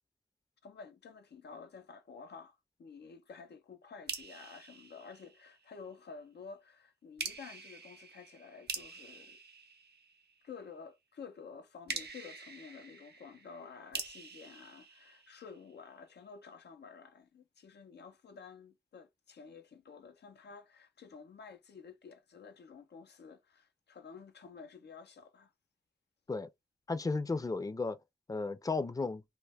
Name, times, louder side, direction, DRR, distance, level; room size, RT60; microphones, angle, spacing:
voice 1, 0.6-9.4 10.4-25.5, left 5 dB, 85° left, 0.4 m, -51 dB
sound 1, 4.1-5.8 7.2-10.5 11.9-15.8, right 4 dB, 80° right, 0.6 m, -45 dB
voice 2, 26.9-28.0 28.3-29.2, left 3 dB, 20° left, 0.4 m, -34 dB
2.2 x 2.1 x 3.3 m
cardioid pair, 45°, 17 cm